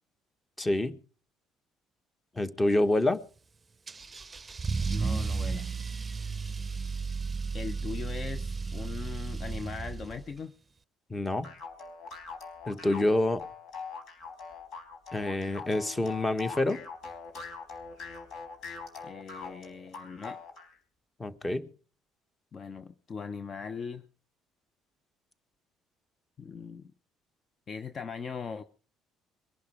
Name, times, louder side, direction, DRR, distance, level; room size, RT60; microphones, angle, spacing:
voice 1, 0.6-1.0 2.3-3.2 11.1-11.5 12.7-13.4 15.1-16.8 21.2-21.7, left 2 dB, 20° left, 12 dB, 1.5 m, -27 dB
Car / Engine starting / Accelerating revving vroom, 3.9-10.4, right 4 dB, 25° right, 0.7 m, -33 dB
voice 2, 4.9-5.7 7.5-10.5 19.0-20.4 22.5-24.1 26.4-26.9 27.7-28.6, left 5 dB, 40° left, 13 dB, 0.8 m, -40 dB
sound 1, 11.4-20.7, left 5 dB, 60° left, 4.2 m, -43 dB
22.0 x 11.5 x 5.0 m, 0.40 s
hypercardioid pair, 60°, 0 cm